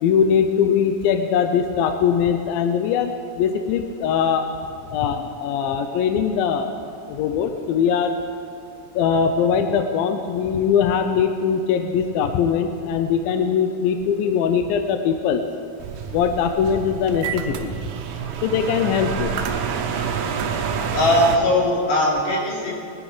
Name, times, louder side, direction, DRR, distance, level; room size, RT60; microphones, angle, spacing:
voice 1, 0.0-4.5 4.9-6.7 7.1-8.1 9.0-15.4 16.1-17.7 18.4-19.4, left 7 dB, 80° left, 7 dB, 2.2 m, -21 dB
sound 1, 15.8-21.4, right 7 dB, 80° right, 1.6 m, -28 dB
voice 2, 20.9-22.7, left 1 dB, 55° left, -4 dB, 4.4 m, -19 dB
20.0 x 11.5 x 5.0 m, 2.6 s
omnidirectional pair, 4.7 m